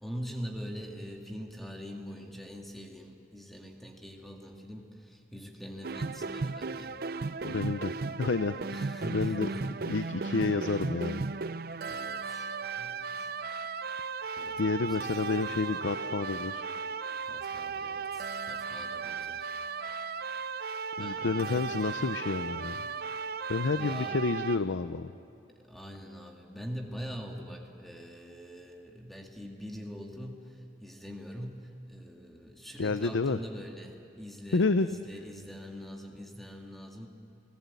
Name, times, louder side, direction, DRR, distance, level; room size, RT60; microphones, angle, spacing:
voice 1, 0.0-7.0 8.7-9.7 11.8-13.3 14.4-15.2 17.2-19.5 21.0-21.7 23.8-24.2 25.6-37.1, equal, ahead, 1 dB, 2.0 m, -43 dB
sound 1, 5.8-24.6, right 4 dB, 50° right, 0.5 m, -36 dB
voice 2, 7.4-8.6 9.1-9.5 9.8-11.2 14.6-16.7 21.0-22.9 23.5-25.1 32.8-33.4 34.5-34.9, left 3 dB, 90° left, 11 dB, 0.6 m, -29 dB
30.0 x 18.5 x 8.3 m, 2.5 s
head